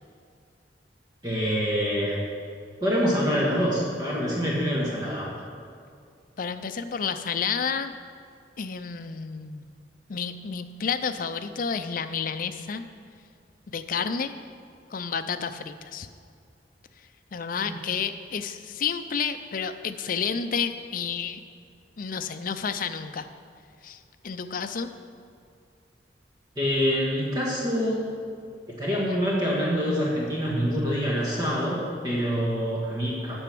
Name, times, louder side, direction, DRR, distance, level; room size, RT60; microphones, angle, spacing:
voice 1, 1.2-2.2 2.8-5.3 17.7-17.8 26.5-28.0 28.7-33.4, equal, 25° right, -5 dB, 1.5 m, -26 dB
voice 2, 6.4-7.9 8.6-9.7 10.1-12.8 13.7-14.3 14.9-16.1 17.3-21.4 22.0-23.3 23.8-24.9, left 6 dB, 50° left, 9 dB, 0.5 m, -30 dB
8.9 x 6.9 x 6.1 m, 2.3 s
head